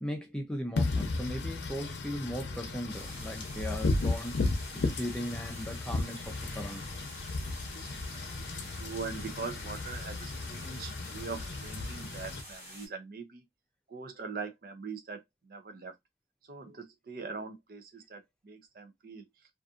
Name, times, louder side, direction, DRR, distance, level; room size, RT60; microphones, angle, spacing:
voice 1, 0.0-4.4 4.7-6.9, equal, 5° left, 0.5 m, -38 dB
Wind / Rain, 0.8-12.4, left 3 dB, 85° left, 0.6 m, -35 dB
sound 1, 2.9-12.9, equal, 15° right, 1.2 m, -49 dB
voice 2, 8.1-13.4 13.9-15.9 16.5-19.3, right 4 dB, 55° right, 0.5 m, -42 dB
2.5 x 2.5 x 2.4 m
head